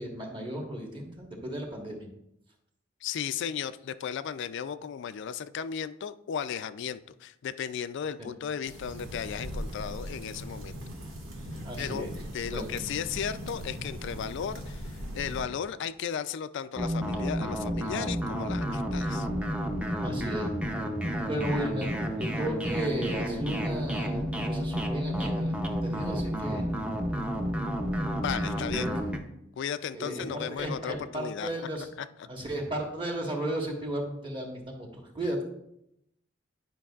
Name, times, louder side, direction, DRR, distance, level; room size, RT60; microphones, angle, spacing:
voice 1, 0.0-2.1 8.2-8.3 11.6-12.1 12.5-12.7 20.0-20.5 21.3-26.6 28.7-28.9 29.9-31.9 32.2-35.4, right 1 dB, 25° right, 0 dB, 1.3 m, -34 dB
voice 2, 3.0-10.8 11.8-12.1 12.3-19.3 28.1-28.9 29.6-31.5, left 8 dB, 60° left, 13 dB, 0.3 m, -35 dB
sound 1, 8.6-15.4, equal, 90° right, 1.6 m, -39 dB
sound 2, 16.8-29.2, equal, 5° right, 0.6 m, -31 dB
10.0 x 5.3 x 2.4 m, 0.80 s
head